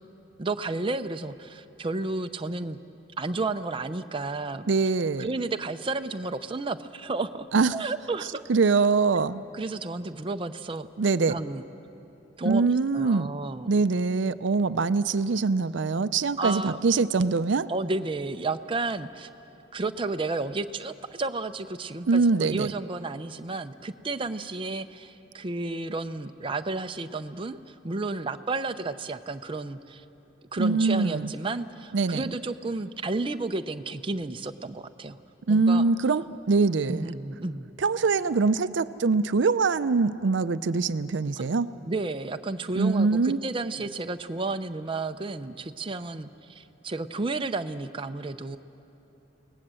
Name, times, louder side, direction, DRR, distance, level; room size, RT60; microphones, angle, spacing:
voice 1, 0.4-2.8 3.2-4.7 5.2-7.5 7.7-8.4 9.5-10.9 11.2-11.6 12.4-13.7 16.4-16.8 17.7-19.3 19.7-30.0 30.5-35.2 35.5-35.8 36.9-37.7 41.6-48.6, right 3 dB, 30° right, 8 dB, 0.6 m, -32 dB
voice 2, 4.7-5.3 7.5-7.8 8.5-9.4 11.0-11.4 12.4-13.3 13.7-17.7 22.1-22.7 30.6-31.3 31.9-32.3 35.5-37.1 37.8-41.7 42.8-43.4, right 4 dB, 70° right, 13 dB, 0.5 m, -23 dB
29.0 x 18.5 x 7.6 m, 2.9 s
head